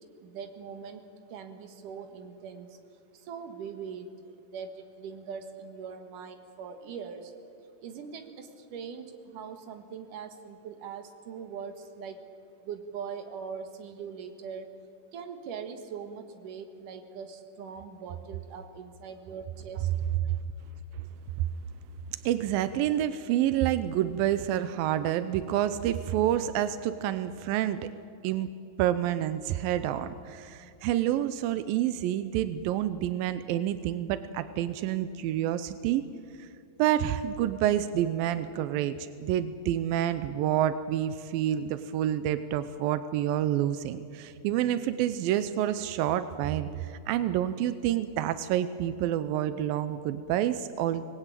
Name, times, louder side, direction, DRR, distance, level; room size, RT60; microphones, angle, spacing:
voice 1, 0.2-1.0 1.3-2.8 3.1-7.3 7.8-12.2 12.6-14.7 15.1-19.9, right 6 dB, 70° right, 7 dB, 3.1 m, -41 dB
voice 2, 22.3-27.9 28.2-28.5 28.8-36.0 36.4-36.5 36.8-51.0, right 11 dB, 90° right, 12 dB, 2.5 m, -28 dB
25.0 x 19.5 x 9.1 m, 2.6 s
omnidirectional pair, 4.0 m